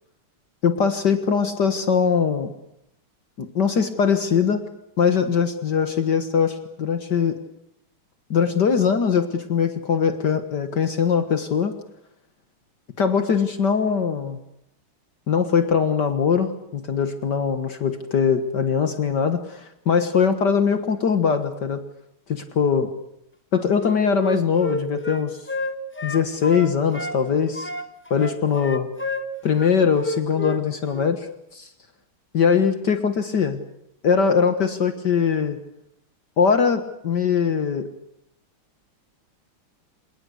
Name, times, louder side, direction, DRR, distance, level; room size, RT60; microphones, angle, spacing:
voice 1, 0.6-2.5 3.4-4.6 5.0-7.4 8.3-11.8 13.0-14.4 15.3-21.8 22.3-22.9 23.5-25.4 26.0-27.7 28.1-28.9 29.4-31.7 32.3-33.6 34.0-35.6 36.4-37.9, left 6 dB, 55° left, 9 dB, 2.0 m, -21 dB
Wind instrument woodwind instrument, 23.8-27.2 27.5-30.6 30.9-31.1, left 1 dB, 5° left, 1.5 m, -31 dB
26.5 x 19.0 x 8.4 m, 0.78 s
omnidirectional pair, 2.3 m